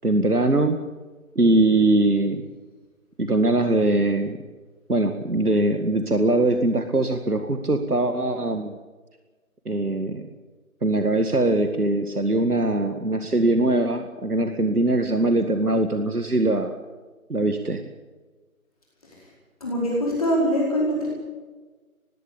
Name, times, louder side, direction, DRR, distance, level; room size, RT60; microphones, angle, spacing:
voice 1, 0.0-0.8 1.4-2.4 3.2-4.4 4.9-8.7 9.7-10.2 10.8-16.7 17.3-17.8, right 2 dB, 85° right, 7 dB, 2.0 m, -21 dB
voice 2, 19.6-21.1, equal, 25° left, -4 dB, 4.8 m, -23 dB
20.0 x 16.5 x 8.6 m, 1.3 s
figure-of-eight pair, 170°, 44 cm